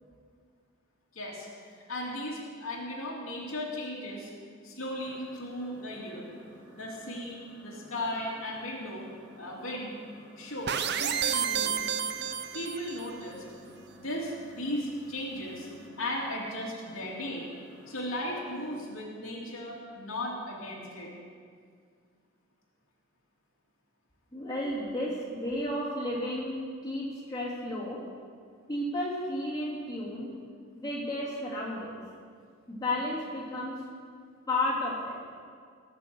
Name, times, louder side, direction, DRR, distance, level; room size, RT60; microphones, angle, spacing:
voice 1, 1.1-1.5 1.9-4.3 4.6-6.3 6.7-9.1 9.3-10.0 10.4-11.9 12.5-13.4 13.9-15.7 16.0-17.5 17.9-21.1, left 1 dB, 75° left, -3 dB, 2.8 m, -36 dB
sound 1, 5.0-18.8, equal, 5° right, 4.1 m, -53 dB
sound 2, 10.7-13.1, right 8 dB, 50° right, 0.7 m, -30 dB
voice 2, 24.3-28.0 28.7-30.3 30.7-31.9 32.7-33.7 34.5-35.2, left 1 dB, 15° left, -6 dB, 3.1 m, -32 dB
18.0 x 6.9 x 7.8 m, 2.1 s
head